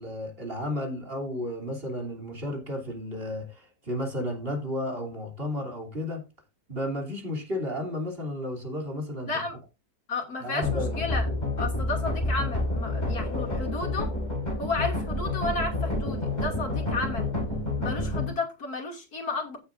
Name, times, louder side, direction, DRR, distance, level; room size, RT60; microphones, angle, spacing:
voice 1, 0.0-6.3 6.7-9.3 10.4-11.0, left 1 dB, 40° right, 3.4 m, -33 dB
voice 2, 9.3-9.6 10.1-11.3 11.6-14.1 14.6-17.3 17.8-19.6, left 3 dB, 80° left, 3.1 m, -32 dB
sound 1, 10.6-18.3, left 2 dB, 30° left, 4.5 m, -29 dB
15.5 x 7.8 x 2.6 m
omnidirectional pair, 1.6 m